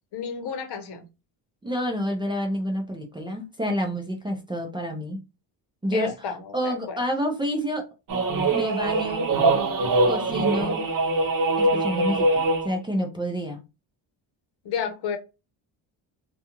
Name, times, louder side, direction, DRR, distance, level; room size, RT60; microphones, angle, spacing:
voice 1, 0.1-1.1 5.9-7.0 14.6-15.2, left 7 dB, 60° left, 0.8 m, -31 dB
voice 2, 1.6-5.2 5.8-7.9 8.5-9.3 10.0-10.8 11.6-13.6, equal, 10° right, 0.5 m, -29 dB
sound 1, 8.1-12.8, right 2 dB, 45° right, 0.8 m, -23 dB
2.4 x 2.3 x 2.9 m
cardioid pair, 115°, 44 cm